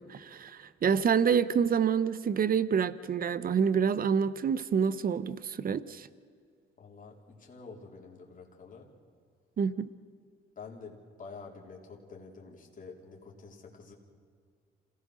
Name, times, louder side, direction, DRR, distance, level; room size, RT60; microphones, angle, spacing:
voice 1, 0.0-6.1 9.6-9.9, right 7 dB, 45° right, 16 dB, 0.9 m, -27 dB
voice 2, 6.8-8.9 10.6-13.9, left 4 dB, 40° left, -1 dB, 3.5 m, -48 dB
27.5 x 17.0 x 6.4 m, 2.2 s
cardioid pair, 90°, 20 cm